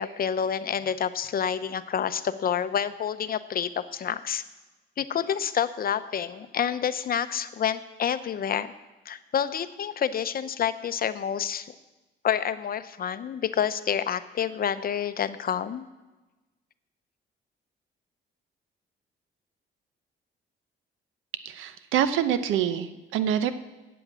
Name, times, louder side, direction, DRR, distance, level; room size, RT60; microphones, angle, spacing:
voice 1, 0.0-4.4 5.0-8.7 9.1-11.7 12.2-15.9, left 8 dB, 50° left, 13 dB, 0.6 m, -28 dB
voice 2, 21.4-23.5, right 9 dB, 85° right, 12 dB, 0.7 m, -26 dB
7.9 x 7.9 x 8.6 m, 1.1 s
cardioid pair, 90°, 20 cm